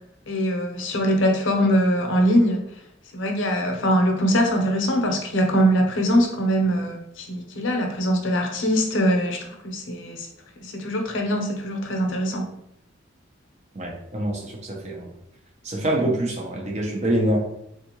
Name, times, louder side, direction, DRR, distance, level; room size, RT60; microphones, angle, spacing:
voice 1, 0.3-2.7 3.1-10.3 10.6-12.5, equal, 75° left, 2 dB, 0.7 m, -22 dB
voice 2, 13.7-15.1 15.6-17.4, right 1 dB, 35° right, 0 dB, 0.6 m, -25 dB
3.6 x 2.5 x 2.9 m, 0.80 s
head